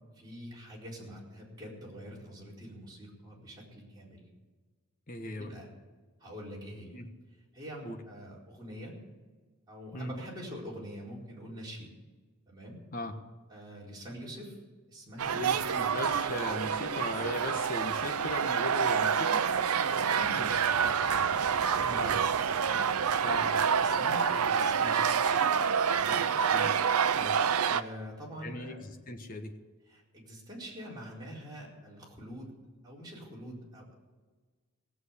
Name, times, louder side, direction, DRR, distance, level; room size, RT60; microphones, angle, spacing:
voice 1, 0.1-4.3 5.4-5.7 6.2-7.0 7.5-9.0 9.7-11.9 12.5-12.8 13.5-14.6 14.9-15.4 19.8-20.7 21.1-22.1 22.6-22.9 23.5-25.2 25.9-26.2 27.7-28.8 29.9-32.5 32.8-33.9, equal, 20° right, -5 dB, 4.4 m, -45 dB
voice 2, 5.1-5.5 6.9-7.1 7.8-8.0 9.9-10.1 12.9-13.1 15.3-19.5 22.0-22.2 23.2-23.5 26.5-26.8 27.2-27.4 28.4-29.5, left 2 dB, 40° left, 5 dB, 1.4 m, -38 dB
sound 1, 15.2-27.8, right 7 dB, 85° right, 0.6 m, -27 dB
17.5 x 8.0 x 8.4 m, 1.4 s
head